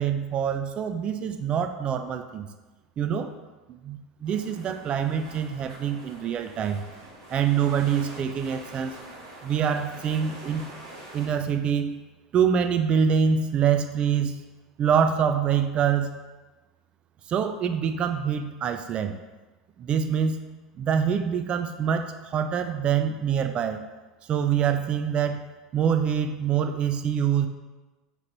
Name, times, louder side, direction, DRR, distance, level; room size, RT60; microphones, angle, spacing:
voice 1, 0.0-2.5 3.0-3.3 3.7-6.8 7.3-8.9 9.4-10.7 11.1-12.0 12.3-14.4 14.8-16.1 17.3-19.1 19.8-20.4 20.8-23.8 24.3-25.5 25.7-27.5, right 7 dB, 40° right, 8 dB, 0.3 m, -25 dB
sound 1, 4.2-11.3, right 2 dB, 85° right, 1.3 m, -45 dB
3.1 x 2.9 x 3.9 m, 1.2 s
hypercardioid pair, 90°, 3 cm